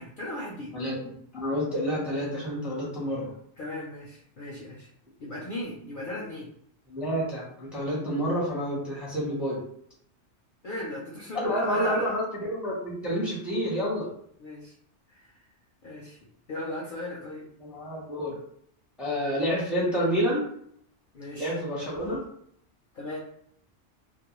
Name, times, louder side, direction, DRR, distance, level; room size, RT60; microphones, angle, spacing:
voice 1, 0.0-0.7 3.6-4.9 5.2-6.5 10.6-12.2 14.4-14.7 15.1-15.4 15.8-17.5 21.1-21.6 22.9-23.2, left 1 dB, 55° left, -4 dB, 0.6 m, -37 dB
voice 2, 0.7-3.3 6.9-9.6 11.3-14.1 17.6-18.4 19.0-20.4 21.4-22.2, equal, ahead, -5 dB, 0.6 m, -29 dB
2.3 x 2.1 x 3.0 m, 0.67 s
omnidirectional pair, 1.2 m